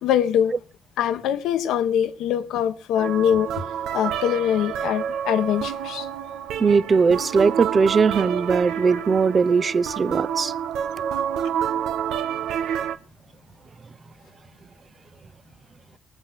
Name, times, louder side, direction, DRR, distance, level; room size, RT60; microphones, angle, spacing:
voice 1, 0.0-0.5 1.0-6.1, left 9 dB, 85° left, 1.5 m, -23 dB
sound 1, 3.0-13.0, right 9 dB, 90° right, 1.2 m, -28 dB
voice 2, 6.6-10.5, right 5 dB, 40° right, 0.8 m, -20 dB
22.5 x 8.0 x 6.0 m
cardioid pair, 90°, 0 cm